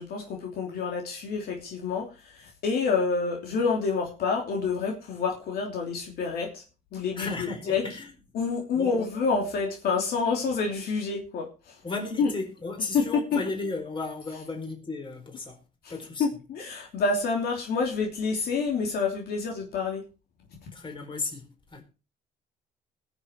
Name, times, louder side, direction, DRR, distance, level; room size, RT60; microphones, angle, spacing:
voice 1, 0.0-6.6 6.9-7.9 8.3-11.8 12.2-12.3 12.9-13.4 16.2-20.0, left 4 dB, 65° left, 3.2 m, -28 dB
voice 2, 7.2-8.1 8.7-9.0 11.8-15.6 15.9-16.3 20.7-21.8, left 3 dB, 30° left, 4.4 m, -34 dB
20.5 x 7.2 x 4.4 m
cardioid pair, 110°, 17 cm